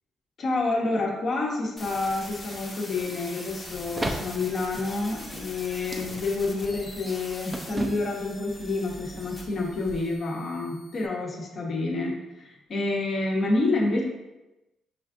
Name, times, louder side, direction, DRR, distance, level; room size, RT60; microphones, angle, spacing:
voice 1, 0.4-14.0, left 2 dB, 50° left, -1 dB, 1.1 m, -28 dB
sound 1, 1.8-11.1, left 2 dB, 25° left, 1.1 m, -43 dB
sound 2, 3.7-10.2, right 1 dB, 20° right, 0.6 m, -38 dB
5.6 x 2.4 x 3.7 m, 0.99 s
cardioid pair, 90°, 0 cm